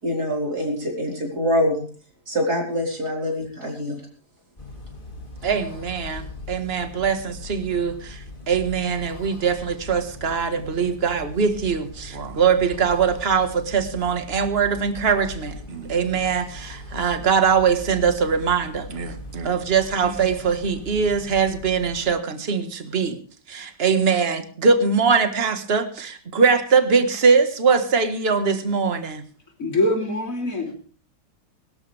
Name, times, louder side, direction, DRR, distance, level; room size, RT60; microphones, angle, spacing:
voice 1, 0.0-1.8 2.3-4.0, equal, 65° right, 0 dB, 5.1 m, -24 dB
sound 1, 4.6-22.1, left 2 dB, 30° left, 3.5 m, -39 dB
voice 2, 5.4-23.2 23.5-29.2, right 5 dB, 35° right, 8 dB, 1.8 m, -22 dB
voice 3, 29.6-30.7, left 1 dB, 50° left, 2 dB, 4.1 m, -23 dB
23.0 x 13.5 x 3.5 m, 0.41 s
omnidirectional pair, 1.8 m